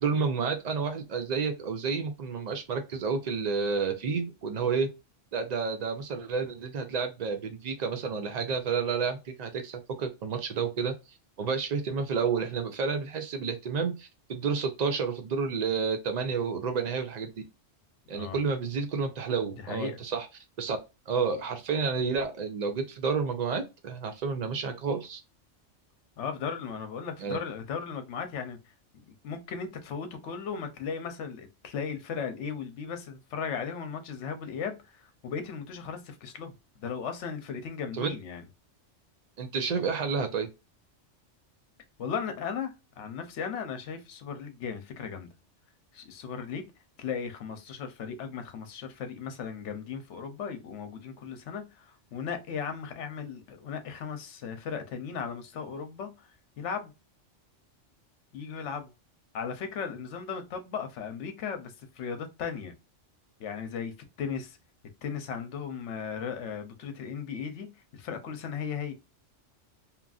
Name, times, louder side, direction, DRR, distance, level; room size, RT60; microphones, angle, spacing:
voice 1, 0.0-4.9 5.3-10.9 11.4-17.3 18.1-20.3 20.6-20.8 21.1-25.2 27.2-27.4 38.0-38.1 39.4-40.5, right 5 dB, 80° right, 0.3 m, -30 dB
voice 2, 18.0-18.4 19.6-20.0 26.2-28.6 29.0-36.5 36.8-38.4 42.0-45.3 45.9-46.7 47.0-56.9 58.3-58.9 59.3-62.7 63.4-64.6 65.0-67.7 67.9-68.9, left 6 dB, 70° left, 1.0 m, -36 dB
2.9 x 2.5 x 2.3 m
omnidirectional pair, 1.3 m